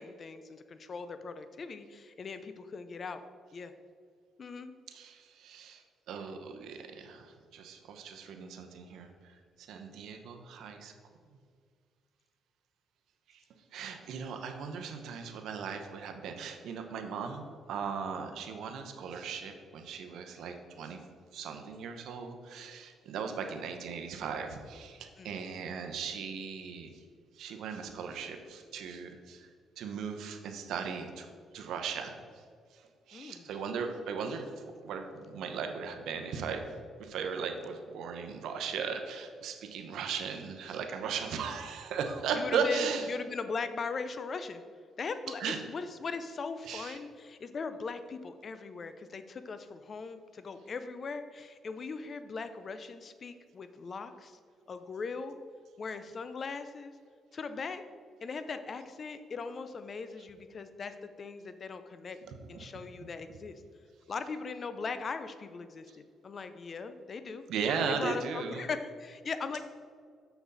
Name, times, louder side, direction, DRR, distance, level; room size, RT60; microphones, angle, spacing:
voice 1, 0.0-3.2 3.5-3.7 4.4-4.7 25.2-25.5 33.1-33.5 42.3-44.6 45.0-54.4 54.7-55.3 55.8-56.9 57.3-57.8 58.2-62.2 62.5-63.5 64.1-67.4 67.9-69.6, left 4 dB, 45° left, 10 dB, 0.5 m, -39 dB
voice 2, 4.9-9.1 9.6-10.9 13.3-13.4 13.7-21.0 21.3-26.9 27.4-29.5 29.8-31.3 31.5-32.1 33.1-34.5 34.8-36.6 37.0-43.1 45.4-45.6 46.6-47.0 62.2-62.7 67.5-68.7, right 6 dB, 80° right, 5 dB, 0.8 m, -37 dB
6.9 x 6.1 x 4.1 m, 2.1 s
cardioid pair, 90°, 0 cm